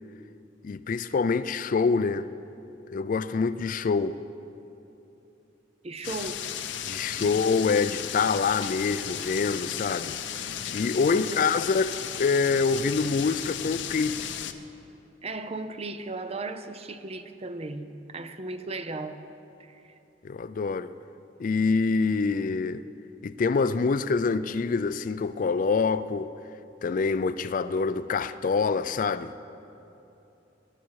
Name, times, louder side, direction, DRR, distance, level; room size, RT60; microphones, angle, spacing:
voice 1, 0.6-2.3 2.9-4.2 6.9-10.1 10.7-14.2 20.2-20.9 21.4-22.8 23.2-26.3 26.8-29.3, left 4 dB, 45° left, 0.3 m, -26 dB
voice 2, 5.8-6.4 7.2-7.4 11.1-11.5 15.2-19.2 19.6-19.8, right 2 dB, 35° right, 0.6 m, -36 dB
sound 1, 6.0-14.5, left 9 dB, 75° left, 0.7 m, -35 dB
22.0 x 11.0 x 4.7 m
head